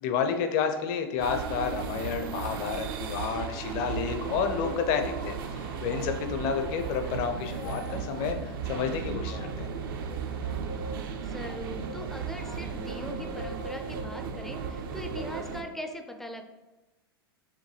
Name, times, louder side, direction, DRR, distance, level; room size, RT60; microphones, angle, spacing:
voice 1, 0.0-9.7, left 6 dB, 50° left, 6 dB, 0.6 m, -30 dB
sound 1, 1.2-15.6, right 6 dB, 60° right, 0.5 m, -35 dB
Boat Water vehicle, 5.2-14.4, left 1 dB, 70° left, 0.9 m, -49 dB
voice 2, 11.2-16.4, equal, ahead, 5 dB, 0.4 m, -40 dB
5.9 x 2.2 x 3.1 m, 1.1 s
hypercardioid pair, 105°, 13 cm